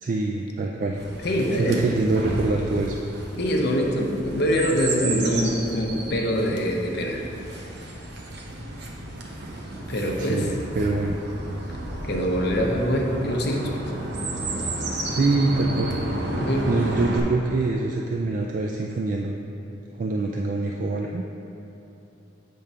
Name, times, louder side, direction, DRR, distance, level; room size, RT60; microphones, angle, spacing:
voice 1, 0.0-1.0 1.6-3.0 10.2-11.2 15.1-15.9 16.7-19.3 20.0-21.2, right 3 dB, 45° right, 1 dB, 0.3 m, -25 dB
Chirp tweet, 0.9-17.2, right 2 dB, 60° right, 0.8 m, -32 dB
voice 2, 1.2-1.8 3.4-7.2 9.9-10.5 12.0-13.7 16.3-16.7, equal, 60° left, 0 dB, 0.8 m, -24 dB
7.8 x 3.6 x 5.5 m, 2.9 s
head